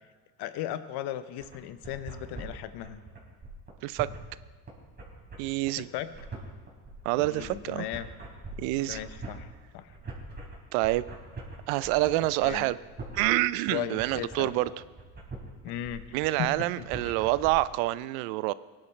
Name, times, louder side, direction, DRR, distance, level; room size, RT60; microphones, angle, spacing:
voice 1, 0.4-3.0 5.8-6.1 7.2-8.1 8.9-9.9 12.4-12.6 13.7-14.6 15.6-16.7 17.0-17.1, left 11 dB, 65° left, 13 dB, 0.8 m, -36 dB
sound 1, 1.4-17.5, right 3 dB, 25° right, 3.6 m, -43 dB
voice 2, 5.4-5.9 7.0-7.9 8.6-9.0 10.7-11.0 11.7-12.8 13.2-14.7 16.1-18.5, right 18 dB, 80° right, 18 dB, 0.5 m, -27 dB
18.0 x 10.5 x 3.2 m, 1.4 s
supercardioid pair, 95°, 43 cm